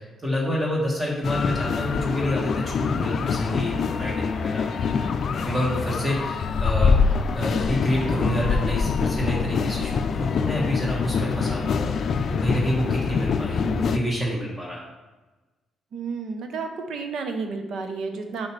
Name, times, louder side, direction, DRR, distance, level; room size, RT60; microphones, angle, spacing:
voice 1, 0.0-4.7 5.4-11.9 12.3-14.8, equal, 15° right, -4 dB, 1.6 m, -28 dB
sound 1, 1.2-14.0, left 5 dB, 55° left, 0.4 m, -25 dB
voice 2, 15.9-18.5, right 4 dB, 70° right, 6 dB, 0.8 m, -31 dB
6.5 x 4.8 x 3.3 m, 1.2 s
cardioid pair, 90°, 0 cm